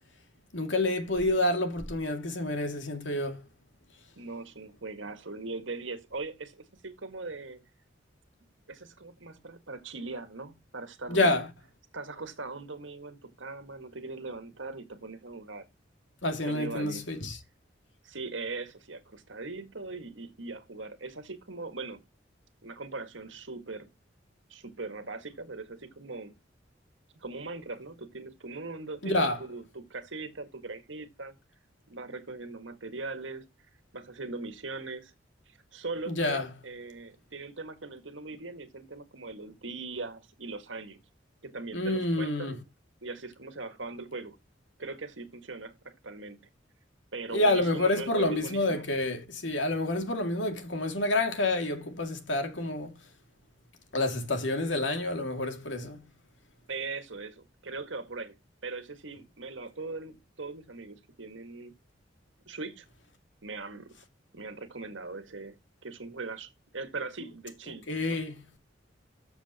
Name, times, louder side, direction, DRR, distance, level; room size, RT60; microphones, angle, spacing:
voice 1, 0.5-3.4 11.1-11.5 16.2-17.4 29.0-29.4 36.1-36.5 41.7-42.5 47.3-52.9 53.9-56.0 67.9-68.4, left 2 dB, 80° left, 2.3 m, -28 dB
voice 2, 4.2-7.6 8.7-11.3 11.9-15.6 16.5-17.1 18.0-22.0 22.6-23.9 24.5-26.3 27.2-31.3 31.9-33.4 33.9-35.1 35.5-41.0 41.4-42.6 43.0-44.4 44.8-46.5 47.1-48.9 56.7-58.4 58.6-61.7 62.5-62.9 63.4-64.0 64.3-65.6 65.8-68.2, right 3 dB, 90° right, 1.8 m, -40 dB
13.5 x 7.1 x 2.9 m
head